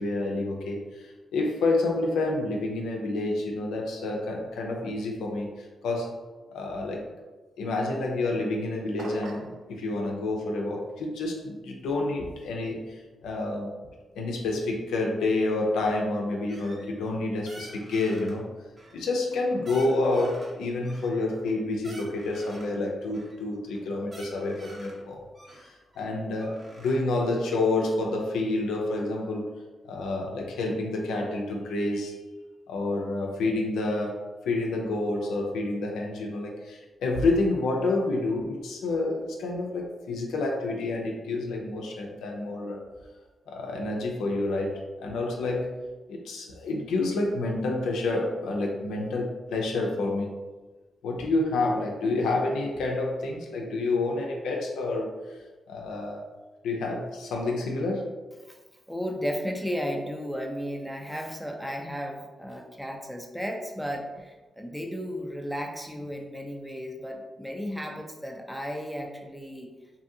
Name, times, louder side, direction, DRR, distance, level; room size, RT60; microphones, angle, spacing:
voice 1, 0.0-6.2 6.5-7.1 7.6-13.7 14.2-18.4 18.9-25.3 26.0-29.5 29.8-32.2 32.7-34.2 34.5-42.8 43.5-45.8 46.1-50.3 51.0-55.1 55.7-56.2 56.6-58.2, left 2 dB, 85° left, 0 dB, 0.4 m, -28 dB
sound 1, 9.0-9.6, right 2 dB, 65° right, 0.4 m, -39 dB
sound 2, 16.5-17.2 17.4-18.4 18.8-19.4 19.6-20.5 20.8-22.8 23.1-23.4 23.7-23.8 24.0-25.0 25.3-26.9, right 1 dB, 40° right, 0.9 m, -48 dB
voice 2, 58.9-69.7, equal, ahead, 1 dB, 0.5 m, -34 dB
2.6 x 2.5 x 2.6 m, 1.2 s
supercardioid pair, 50°, 0 cm